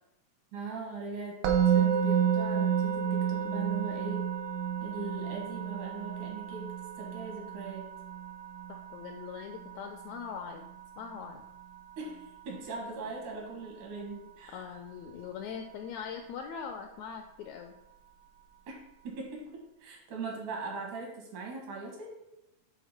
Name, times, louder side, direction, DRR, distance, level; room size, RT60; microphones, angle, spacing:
voice 1, 0.5-4.3 4.8-7.9 12.0-14.6 18.7-18.8 19.0-22.1, right 3 dB, 75° right, -1 dB, 3.1 m, -40 dB
Musical instrument, 1.4-12.6, right 8 dB, 90° right, 2.4 m, -31 dB
voice 2, 8.7-10.7 11.0-11.5 14.5-17.7, left 7 dB, 85° left, 5 dB, 1.6 m, -41 dB
8.5 x 3.8 x 4.3 m, 0.87 s
omnidirectional pair, 3.7 m